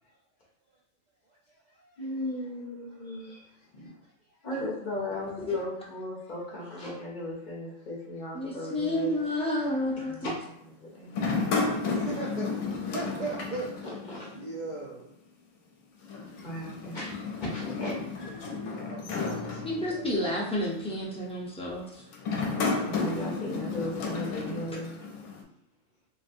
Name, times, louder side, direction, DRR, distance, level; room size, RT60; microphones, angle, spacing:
voice 1, 1.3-2.1 3.5-4.1 11.5-14.0 14.3-15.1 17.3-17.4 17.9-18.4 18.7-20.0 23.1-23.5, right 3 dB, 75° right, -4 dB, 0.4 m, -40 dB
voice 2, 2.0-3.5 3.7-3.8 4.4-9.1 10.0-11.2 13.8-14.3 16.4-17.1 17.4-17.9 22.7-24.9, left 1 dB, 45° left, -4 dB, 0.7 m, -36 dB
voice 3, 8.3-10.1 19.6-22.0, left 1 dB, 10° left, -6 dB, 0.3 m, -30 dB
sound 1, 11.1-14.5 14.8-14.9 16.0-20.2 20.9-21.2 22.1-25.4, left 4 dB, 75° left, 0.9 m, -32 dB
3.1 x 2.6 x 2.5 m, 0.73 s
omnidirectional pair, 1.3 m